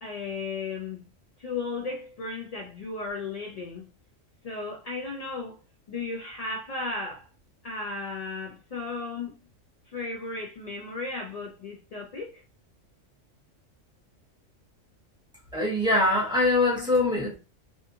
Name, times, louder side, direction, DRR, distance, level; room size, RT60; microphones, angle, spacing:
voice 1, 0.0-1.0 1.4-3.9 4.4-5.6 5.9-7.3 7.6-9.4 9.9-12.4, left 3 dB, 75° left, 0.3 m, -35 dB
voice 2, 15.5-17.4, left 2 dB, 5° right, 0.9 m, -23 dB
2.6 x 2.4 x 2.6 m
omnidirectional pair, 1.3 m